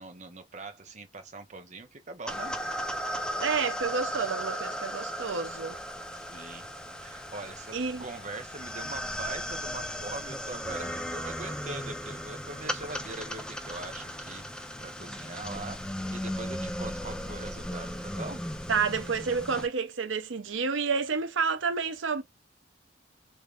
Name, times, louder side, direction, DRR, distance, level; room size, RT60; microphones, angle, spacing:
voice 1, 0.0-2.6 6.1-14.4 14.8-18.4, right 3 dB, 40° right, 0.9 m, -42 dB
sound 1, 2.3-19.7, equal, 5° left, 0.5 m, -36 dB
voice 2, 3.4-5.8 7.7-8.1 18.7-22.2, right 5 dB, 85° right, 0.7 m, -29 dB
3.3 x 3.1 x 2.4 m
head